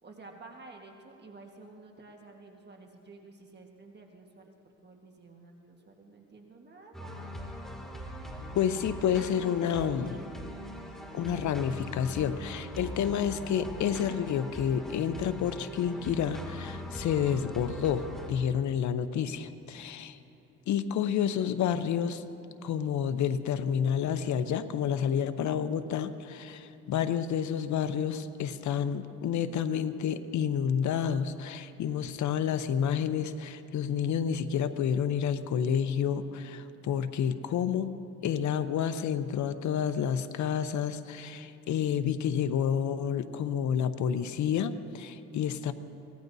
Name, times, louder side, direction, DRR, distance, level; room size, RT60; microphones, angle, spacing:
voice 1, 0.0-4.5 4.8-7.4 19.7-19.9, right 3 dB, 35° right, 2 dB, 1.5 m, -51 dB
sound 1, 6.9-18.3, equal, ahead, 2.3 m, -41 dB
voice 2, 8.6-10.2 11.1-20.2 20.7-22.2 22.6-37.9 38.2-45.7, left 8 dB, 70° left, 11 dB, 0.8 m, -29 dB
24.0 x 18.5 x 2.7 m, 2.9 s
cardioid pair, 90°, 30 cm